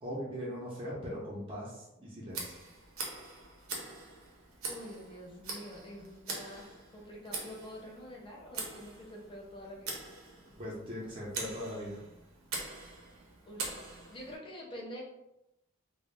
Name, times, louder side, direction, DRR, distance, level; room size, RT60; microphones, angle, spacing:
voice 1, 0.0-2.6 10.6-12.0, equal, 25° right, -7 dB, 0.6 m, -40 dB
Tick, 2.3-14.4, right 3 dB, 80° right, 0.6 m, -43 dB
voice 2, 4.7-10.0 13.5-13.7 14.1-15.0, equal, 25° left, -2 dB, 0.6 m, -46 dB
2.4 x 2.0 x 3.2 m, 0.89 s
head